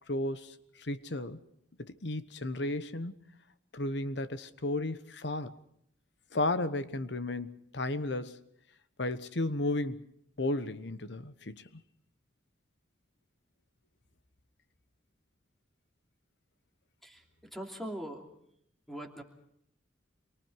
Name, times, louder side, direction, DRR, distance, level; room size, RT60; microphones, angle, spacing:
voice 1, 0.1-1.4 1.8-3.3 3.7-5.6 6.3-8.5 9.0-10.0 10.4-11.7, left 2 dB, 70° left, 1.1 m, -34 dB
voice 2, 17.5-18.2 18.9-19.2, right 1 dB, ahead, 2.9 m, -41 dB
27.5 x 24.0 x 4.7 m
head